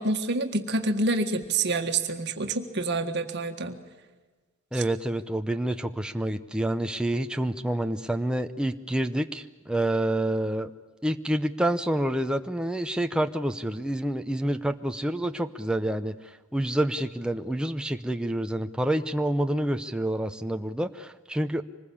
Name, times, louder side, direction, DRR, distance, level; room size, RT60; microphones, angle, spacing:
voice 1, 0.0-3.8 4.7-4.8, right 2 dB, 55° right, 5 dB, 1.7 m, -27 dB
voice 2, 4.7-10.7 11.0-21.6, right 1 dB, 5° right, 7 dB, 0.7 m, -28 dB
25.0 x 20.5 x 8.6 m, 1.3 s
head